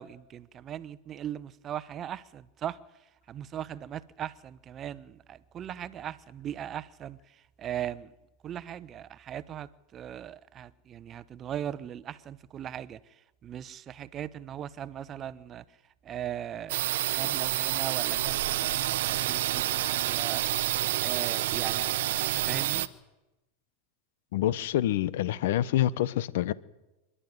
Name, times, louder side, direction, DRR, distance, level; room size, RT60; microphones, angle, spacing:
voice 1, 0.0-2.8 3.3-7.2 7.6-8.1 8.4-13.0 13.4-15.6 16.0-16.8 17.1-20.5 21.0-22.9, right 10 dB, 30° right, 0.9 m, -39 dB
sound 1, 16.7-22.9, right 14 dB, 75° right, 0.9 m, -28 dB
voice 2, 24.3-26.5, left 13 dB, 70° left, 0.9 m, -27 dB
26.0 x 11.5 x 9.5 m
hypercardioid pair, 120°, 0 cm